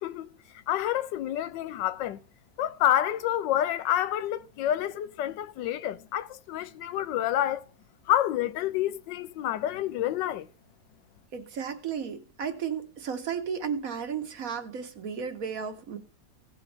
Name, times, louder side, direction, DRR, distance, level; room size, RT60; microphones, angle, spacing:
voice 1, 0.7-2.2 2.6-7.6 8.1-10.5, left 12 dB, 85° left, 1.3 m, -28 dB
voice 2, 11.3-16.0, right 7 dB, 55° right, 1.4 m, -34 dB
17.0 x 7.1 x 3.3 m
omnidirectional pair, 1.9 m